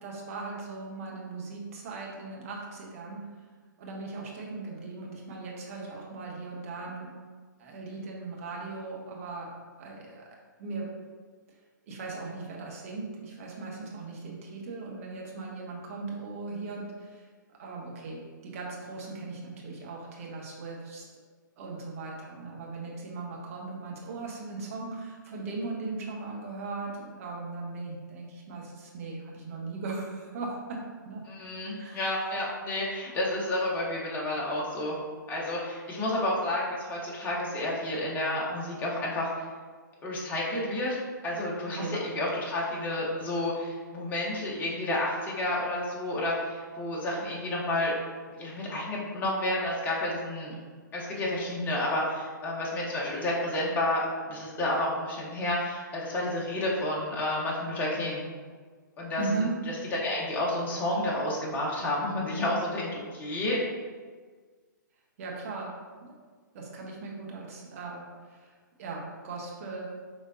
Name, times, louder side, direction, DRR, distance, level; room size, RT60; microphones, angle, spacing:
voice 1, 0.0-3.2 3.8-7.1 7.6-9.5 9.8-10.3 10.6-10.9 11.8-17.3 17.6-21.1 21.6-31.2 31.8-32.1 41.8-42.0 59.2-59.5 65.2-65.7 66.0-66.1 66.5-69.9, right 3 dB, 45° right, -2 dB, 1.1 m, -38 dB
voice 2, 31.3-34.9 35.3-39.4 40.0-41.0 41.2-41.8 42.1-47.9 48.4-50.5 50.9-58.2 59.0-59.2 59.9-63.6, left 1 dB, 15° left, -4 dB, 1.0 m, -30 dB
5.0 x 3.4 x 2.7 m, 1.5 s
figure-of-eight pair, 125°, 11 cm